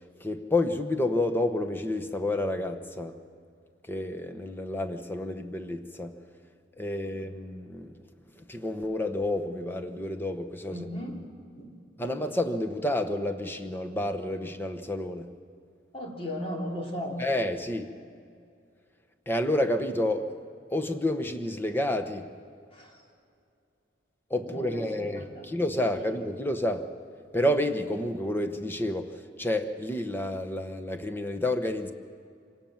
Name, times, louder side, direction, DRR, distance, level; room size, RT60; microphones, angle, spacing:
voice 1, 0.2-3.1 3.9-6.1 6.8-7.9 8.4-10.9 12.0-15.3 17.2-17.9 19.3-20.3 20.7-22.3 24.3-26.9 27.3-31.9, left 1 dB, 10° left, 6 dB, 1.0 m, -29 dB
voice 2, 10.7-11.2 11.6-12.1 15.9-17.2 22.7-23.0 24.5-25.5, equal, 30° left, 0 dB, 3.1 m, -37 dB
25.5 x 18.0 x 7.3 m, 2.4 s
head